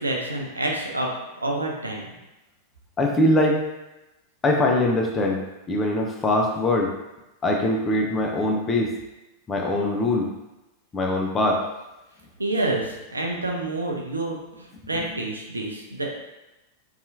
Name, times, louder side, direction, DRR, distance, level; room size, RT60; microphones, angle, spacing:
voice 1, 0.0-2.1 12.4-16.1, right 2 dB, 80° right, 0 dB, 0.4 m, -28 dB
voice 2, 3.0-3.6 4.4-5.4 5.7-6.9 7.4-8.9 9.5-10.3 10.9-11.6 15.0-15.1, left 1 dB, 20° left, 1 dB, 0.4 m, -22 dB
2.7 x 2.3 x 2.6 m, 0.98 s
figure-of-eight pair, 90°, 0 cm